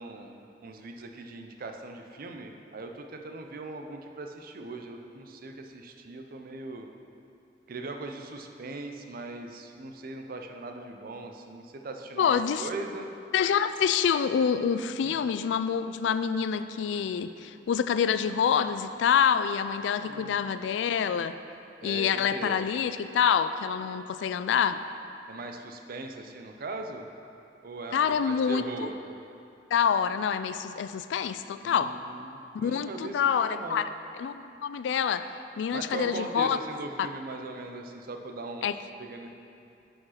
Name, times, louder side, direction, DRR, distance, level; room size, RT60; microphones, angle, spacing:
voice 1, 0.0-6.9 7.7-13.1 15.0-15.3 19.9-20.5 21.8-22.6 25.3-27.1 27.6-29.0 31.6-33.8 35.7-38.7 39.0-39.3, right 3 dB, 55° right, 4 dB, 0.5 m, -40 dB
voice 2, 12.2-12.7 13.3-21.3 21.8-24.8 27.9-28.9 29.7-31.9 32.5-33.9 34.2-36.6 37.0-37.1 38.6-38.8, left 7 dB, 75° left, 12 dB, 0.3 m, -27 dB
6.2 x 5.0 x 5.7 m, 2.6 s
head